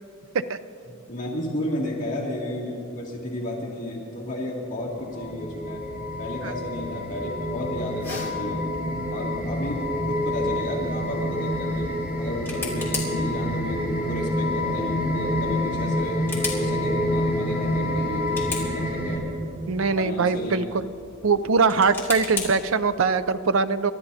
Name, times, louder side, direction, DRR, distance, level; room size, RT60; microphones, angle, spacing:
voice 1, 0.9-5.8 6.2-8.8 9.1-16.2 16.5-19.3 20.0-20.6, left 1 dB, 40° left, -6 dB, 2.5 m, -32 dB
sound 1, 4.9-19.2, left 1 dB, 10° right, 2.9 m, -27 dB
sound 2, 7.9-23.2, left 4 dB, 10° left, 2.8 m, -39 dB
voice 2, 19.7-20.9 21.2-23.9, right 4 dB, 70° right, 13 dB, 0.5 m, -22 dB
29.0 x 13.0 x 2.8 m, 2.7 s
head